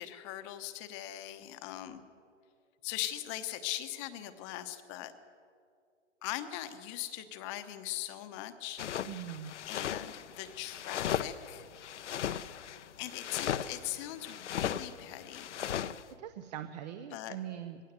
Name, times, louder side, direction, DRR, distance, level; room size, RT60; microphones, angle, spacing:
voice 1, 0.0-2.0 2.8-5.1 6.2-8.8 9.7-11.7 13.0-15.5 17.1-17.4, left 13 dB, 25° left, 10 dB, 1.0 m, -40 dB
sound 1, 8.8-16.0, left 9 dB, 70° left, 0.9 m, -37 dB
voice 2, 9.0-9.5 16.2-17.8, right 11 dB, 35° right, 9 dB, 0.8 m, -41 dB
20.0 x 16.5 x 8.0 m, 2.4 s
hypercardioid pair, 150°, 37 cm